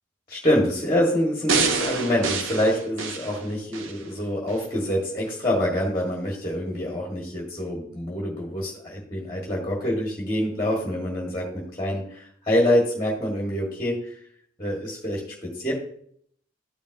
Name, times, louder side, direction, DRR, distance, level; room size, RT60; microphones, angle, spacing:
voice 1, 0.3-14.2 14.6-15.7, left 1 dB, 20° left, -3 dB, 1.5 m, -26 dB
sound 1, 1.5-4.0 4.5-4.6, right 4 dB, 80° right, 0.8 m, -27 dB
12.0 x 5.1 x 2.7 m, 0.63 s
head